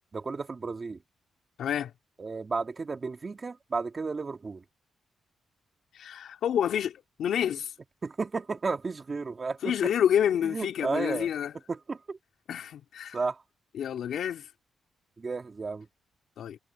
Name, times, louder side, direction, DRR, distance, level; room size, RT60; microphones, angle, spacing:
voice 1, 0.1-1.0 2.2-4.6 8.0-9.9 10.4-11.3 11.7-12.2 13.1-13.4 15.2-15.9, right 4 dB, 30° right, 2.4 m, -33 dB
voice 2, 1.6-1.9 5.9-7.7 9.6-11.5 12.5-13.2 13.7-14.5 16.4-16.6, left 9 dB, 75° left, 3.3 m, -28 dB
cardioid pair, 105°, 0 cm